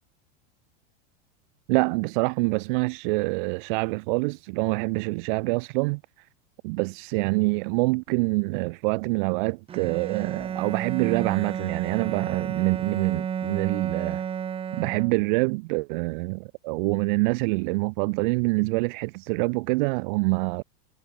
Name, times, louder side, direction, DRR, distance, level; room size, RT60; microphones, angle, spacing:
voice 1, 1.7-6.0 6.6-14.2 14.8-20.6, right 28 dB, 50° right, 7.8 m, -26 dB
Bowed string instrument, 9.7-15.5, right 8 dB, 20° right, 3.2 m, -32 dB
supercardioid pair, 170°, 31 cm